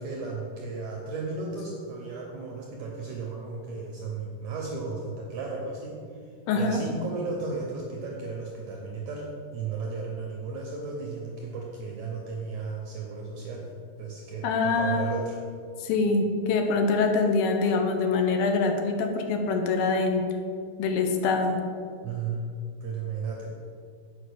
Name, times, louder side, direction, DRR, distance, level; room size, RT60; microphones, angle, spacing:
voice 1, 0.0-6.0 6.6-13.7 14.0-15.4 22.0-22.5 22.8-23.6, right 4 dB, 75° right, -1 dB, 1.7 m, -34 dB
voice 2, 6.5-6.8 14.4-15.1 15.8-20.3 20.8-21.6, left 4 dB, 80° left, 4 dB, 2.6 m, -24 dB
7.1 x 5.0 x 6.5 m, 2.3 s
omnidirectional pair, 4.2 m